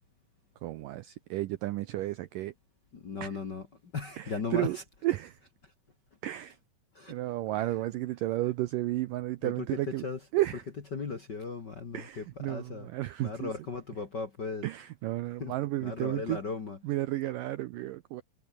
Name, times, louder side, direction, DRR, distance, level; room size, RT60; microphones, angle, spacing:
voice 1, 0.6-2.5 3.2-3.3 4.2-4.8 5.0-5.4 6.2-6.6 7.1-10.0 10.3-10.6 11.9-13.5 14.6-16.4 16.8-18.2, right 16 dB, 90° right, 1.9 m, -32 dB
voice 2, 2.9-3.7 3.9-4.8 6.9-7.1 7.6-7.7 9.4-10.2 10.9-12.9 13.2-14.6 15.4-16.8, left 4 dB, 40° left, 1.5 m, -37 dB
omnidirectional pair, 4.8 m